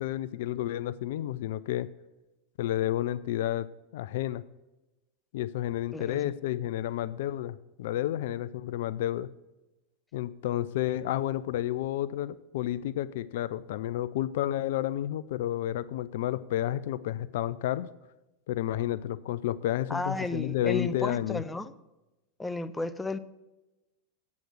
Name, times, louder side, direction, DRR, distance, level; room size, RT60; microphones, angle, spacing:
voice 1, 0.0-1.9 2.6-4.4 5.3-9.3 10.1-17.9 18.5-21.4, left 13 dB, 65° left, 17 dB, 0.4 m, -31 dB
voice 2, 5.9-6.3 19.9-21.7 22.4-23.2, left 2 dB, 10° left, 13 dB, 0.6 m, -33 dB
8.4 x 7.9 x 6.5 m, 1.0 s
hypercardioid pair, 90°, 0 cm